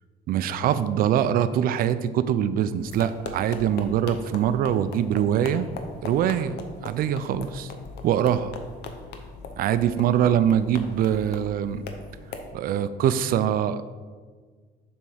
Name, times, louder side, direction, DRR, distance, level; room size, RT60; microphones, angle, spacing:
voice 1, 0.3-5.7 6.0-7.7 8.0-8.5 9.6-11.8 12.5-14.0, right 9 dB, 60° right, 13 dB, 0.4 m, -23 dB
sound 1, 2.8-12.5, left 4 dB, 75° left, 0.8 m, -40 dB
6.9 x 3.5 x 4.9 m, 1.5 s
cardioid pair, 110°, 17 cm